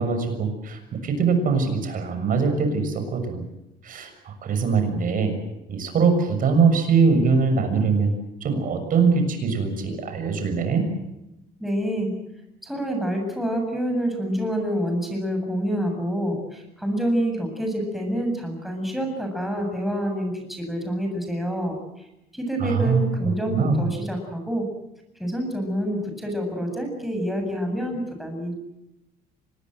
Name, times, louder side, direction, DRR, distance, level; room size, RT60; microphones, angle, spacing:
voice 1, 0.0-3.4 3.8-5.3 5.7-8.1 8.4-10.9 22.6-23.8, right 5 dB, 55° right, 7 dB, 6.7 m, -22 dB
voice 2, 11.6-12.2 12.6-21.8 22.3-24.7 25.2-28.5, equal, ahead, 3 dB, 7.7 m, -27 dB
25.5 x 20.5 x 8.0 m, 0.90 s
cardioid pair, 110°, 17 cm